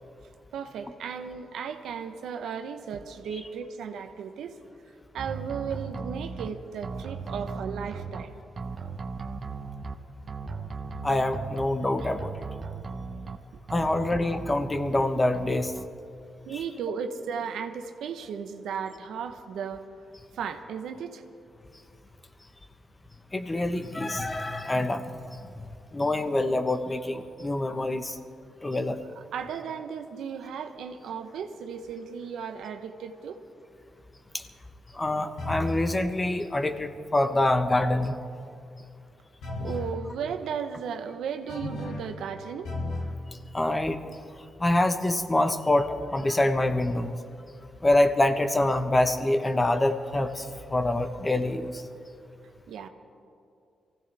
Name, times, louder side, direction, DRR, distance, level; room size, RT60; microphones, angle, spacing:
voice 1, 0.5-4.5 5.1-8.3 16.4-19.9 20.3-21.2 29.3-33.4 39.6-42.7 52.7-52.9, right 7 dB, 85° right, 7 dB, 1.0 m, -35 dB
sound 1, 5.2-6.5 6.8-8.2 8.6-10.0 10.3-11.7 12.0-13.4 13.7-15.0 15.3-15.9, right 4 dB, 45° right, 0.9 m, -37 dB
voice 2, 11.0-12.3 13.7-15.7 23.3-28.2 28.6-29.0 34.3-34.4 34.9-38.2 43.5-44.0 44.6-47.2 47.8-51.9, left 1 dB, 20° left, 8 dB, 1.1 m, -26 dB
sound 2, 35.4-35.9 39.4-40.0 41.5-42.2 42.6-43.2, left 2 dB, 85° left, 3.4 m, -33 dB
23.5 x 16.5 x 3.4 m, 2.5 s
cardioid pair, 80°, 0 cm